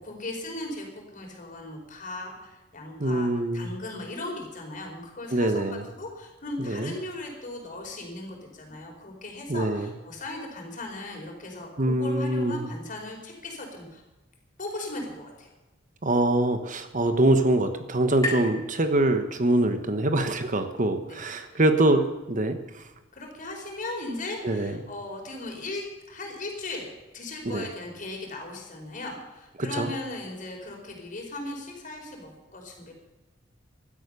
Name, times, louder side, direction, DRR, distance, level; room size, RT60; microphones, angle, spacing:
voice 1, 0.0-14.0 14.6-15.5 21.0-21.2 21.5-21.6 23.1-32.9, left 2 dB, 40° left, 1 dB, 5.0 m, -38 dB
voice 2, 3.0-3.7 5.3-5.9 6.6-6.9 9.5-9.9 11.8-12.7 16.0-22.9 24.4-24.8 27.4-27.6 29.6-29.9, right 1 dB, 40° right, 8 dB, 1.3 m, -24 dB
sound 1, 15.8-19.6, left 3 dB, 20° left, 7.2 m, -39 dB
16.5 x 12.5 x 6.9 m, 1.1 s
head